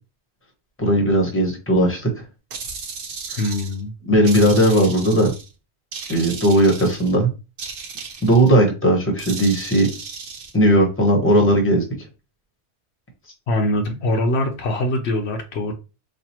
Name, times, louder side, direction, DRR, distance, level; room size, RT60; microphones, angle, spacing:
voice 1, 0.8-2.1 3.3-3.4 4.1-5.3 6.1-7.3 8.2-9.9 10.5-11.8, right 1 dB, 10° left, 1.0 m, -17 dB
sound 1, 2.5-3.8 4.2-5.5 5.9-7.2 7.6-8.6 9.2-10.5, right 5 dB, 55° right, 0.8 m, -35 dB
voice 2, 3.4-3.9 13.5-15.7, left 1 dB, 70° left, 0.9 m, -23 dB
4.2 x 2.5 x 2.8 m
omnidirectional pair, 1.2 m